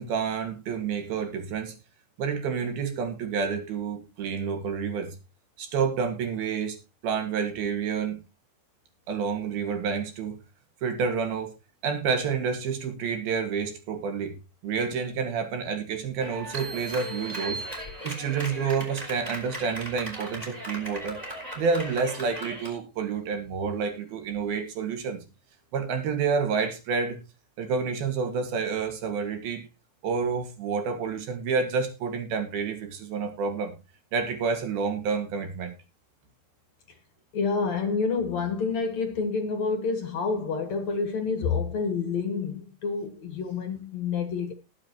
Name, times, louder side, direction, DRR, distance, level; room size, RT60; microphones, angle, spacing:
voice 1, 0.0-1.7 2.2-5.2 5.6-6.8 7.0-8.2 9.1-10.4 10.8-11.5 11.8-14.3 14.6-17.6 18.0-21.2 21.6-25.2 25.7-27.2 27.6-29.6 30.0-33.7 34.1-35.7, right 5 dB, 70° right, 3.8 m, -29 dB
Clapping, 16.2-22.8, equal, 10° right, 4.5 m, -38 dB
sound 1, 16.6-18.5, right 5 dB, 90° right, 2.9 m, -39 dB
voice 2, 37.3-44.5, left 5 dB, 55° left, 2.3 m, -28 dB
20.0 x 7.5 x 3.0 m
omnidirectional pair, 4.4 m